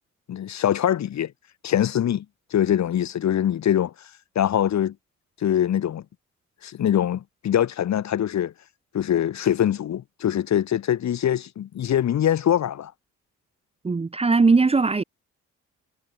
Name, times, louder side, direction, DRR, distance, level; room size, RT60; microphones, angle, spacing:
voice 1, 0.3-1.3 1.6-2.2 2.5-3.9 4.3-4.9 5.4-6.0 6.6-8.5 8.9-12.9, left 10 dB, 65° left, 3.2 m, -23 dB
voice 2, 13.8-15.0, right 4 dB, 20° right, 0.9 m, -19 dB
cardioid pair, 90°, 30 cm